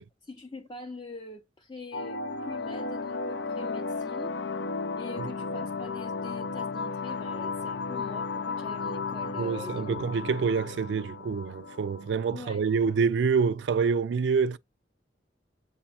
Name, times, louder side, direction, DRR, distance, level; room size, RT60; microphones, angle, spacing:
voice 1, 0.2-4.4 5.0-10.0 12.3-12.6, left 2 dB, 25° left, 0.5 m, -43 dB
sound 1, 1.9-12.9, left 4 dB, 90° left, 0.5 m, -34 dB
voice 2, 9.4-14.6, right 5 dB, 75° right, 0.4 m, -26 dB
7.6 x 2.9 x 2.4 m
head